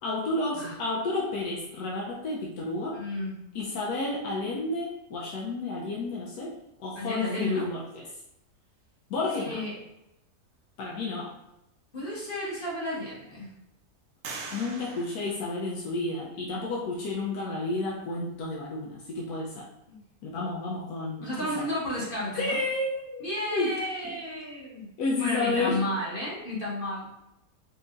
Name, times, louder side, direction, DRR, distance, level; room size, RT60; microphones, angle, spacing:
voice 1, 0.0-3.0 3.5-8.0 9.1-9.6 10.8-11.3 14.5-19.6 20.2-21.3 21.6-21.7 22.4-23.3 23.5-23.7 25.0-25.9, left 2 dB, 90° left, -3 dB, 1.1 m, -31 dB
voice 2, 2.9-3.4 6.9-7.7 9.3-9.8 11.9-13.5 19.9-20.0 21.2-22.6 23.2-27.1, left 1 dB, 40° left, -6 dB, 1.2 m, -32 dB
sound 1, 12.0-12.1 12.7-13.3 14.2-16.2, right 4 dB, 65° right, 0.7 m, -43 dB
4.5 x 2.6 x 2.4 m, 0.88 s
omnidirectional pair, 1.6 m